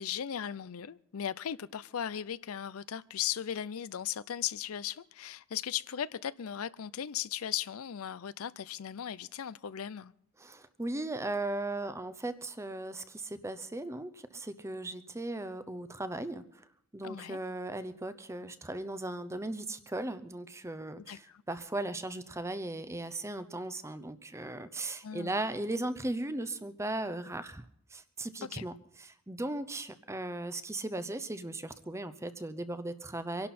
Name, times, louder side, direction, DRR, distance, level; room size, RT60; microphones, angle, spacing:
voice 1, 0.0-10.1 17.0-17.4 21.1-21.4 25.0-25.4 28.5-28.6, left 9 dB, 85° left, 0.5 m, -37 dB
voice 2, 10.4-16.6 16.9-27.6 27.9-33.5, right 2 dB, 15° right, 0.7 m, -37 dB
25.0 x 11.5 x 4.3 m
head